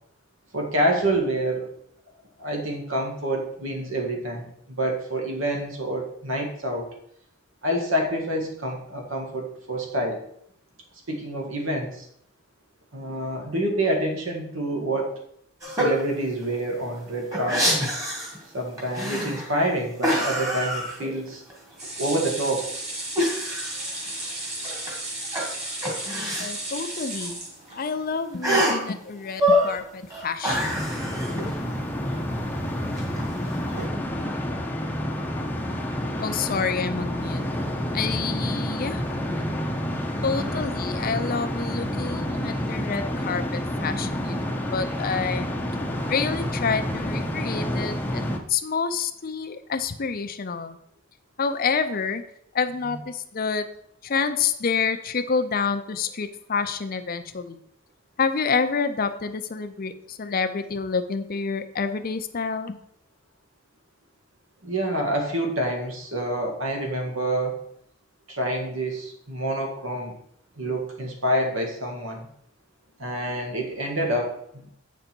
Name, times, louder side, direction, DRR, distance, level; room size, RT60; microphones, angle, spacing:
voice 1, 0.5-1.7 2.4-6.9 7.6-10.2 11.1-12.1 12.9-15.2 15.7-17.8 18.5-21.4 22.0-22.7 52.9-53.0 64.6-67.7 68.3-70.1 70.6-72.3 73.0-74.6, right 1 dB, 70° right, 2 dB, 1.7 m, -27 dB
sound 1, 15.6-16.0 16.4-16.5 16.8-18.4 18.8-19.6 20.0-21.5 21.8-21.9 23.2-24.9 25.2-26.5 26.9-27.0 27.2-27.3 28.4-28.9 29.3-29.8 30.1-31.5 32.9-33.9, equal, 15° right, 1.8 m, -26 dB
sound 2, 21.8-28.1 28.5-28.6 28.9-29.0, right 1 dB, 30° right, 2.2 m, -34 dB
voice 2, 26.4-27.4 27.7-30.8 36.2-37.4 37.9-39.0 40.2-45.5 46.0-48.2 48.5-50.8 51.4-52.2 52.5-53.7 54.0-57.6 58.2-62.8, left 5 dB, 45° left, 9 dB, 0.5 m, -28 dB
sound 3, 30.5-48.4, equal, 10° left, 0.7 m, -29 dB
8.1 x 5.2 x 4.4 m, 0.70 s
head